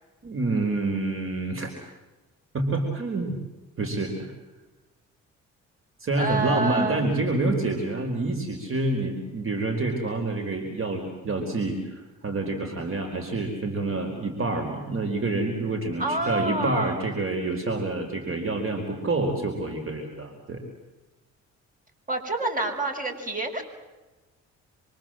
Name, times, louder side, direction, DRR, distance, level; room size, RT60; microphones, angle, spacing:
voice 1, 0.2-1.7 2.5-3.4 3.8-4.3 6.0-20.6, right 2 dB, 45° right, 3 dB, 4.5 m, -27 dB
voice 2, 6.2-7.1 16.0-17.0 22.1-23.6, right 2 dB, 25° right, 4 dB, 6.5 m, -27 dB
27.0 x 24.5 x 7.7 m, 1.2 s
cardioid pair, 90°, 30 cm